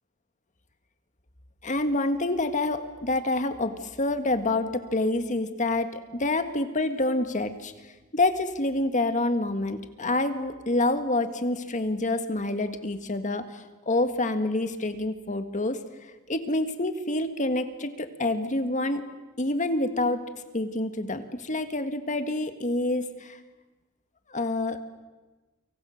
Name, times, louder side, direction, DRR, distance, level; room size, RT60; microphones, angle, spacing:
voice 1, 1.6-7.7 8.1-15.8 16.3-19.0 19.4-23.4 24.3-24.8, left 2 dB, 35° left, 8 dB, 1.7 m, -27 dB
29.5 x 25.0 x 6.5 m, 1.2 s
head